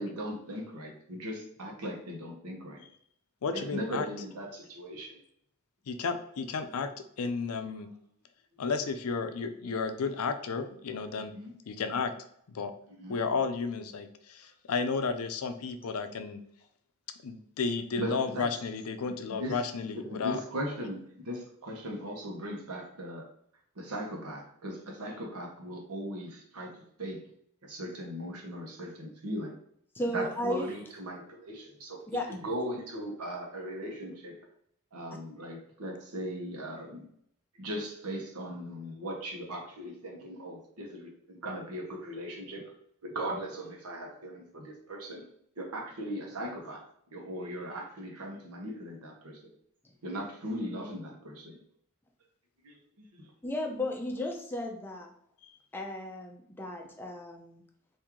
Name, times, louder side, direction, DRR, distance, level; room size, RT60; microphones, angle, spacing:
voice 1, 0.0-2.8 3.5-5.2 11.3-11.5 12.9-13.1 18.0-18.4 19.0-19.6 19.9-23.3 23.7-26.7 27.0-27.2 27.6-29.6 30.1-34.5 34.9-37.1 37.6-42.7 43.0-45.2 45.6-46.8 47.1-49.5 50.0-51.6 52.6-53.3, equal, 90° right, 0 dB, 1.0 m, -38 dB
voice 2, 3.4-4.1 5.9-6.9 7.2-7.9 8.6-11.3 11.7-12.1 12.5-12.7 13.1-16.4 17.2-20.4 55.4-55.5, left 5 dB, 75° left, 9 dB, 0.4 m, -32 dB
voice 3, 29.9-30.7 32.1-32.4 53.4-55.1 55.7-57.6, left 1 dB, 10° left, 1 dB, 0.4 m, -35 dB
3.6 x 2.6 x 2.9 m, 0.68 s
head